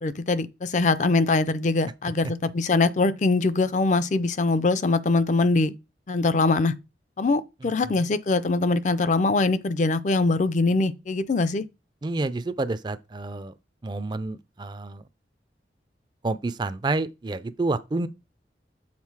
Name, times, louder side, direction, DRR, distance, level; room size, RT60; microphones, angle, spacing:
voice 1, 0.0-5.7 6.1-6.7 7.2-11.7, left 3 dB, 40° left, 0.5 m, -23 dB
voice 2, 7.6-7.9 12.0-13.5 13.8-15.0 16.2-18.1, right 2 dB, 25° right, 0.4 m, -29 dB
7.4 x 3.9 x 4.7 m
head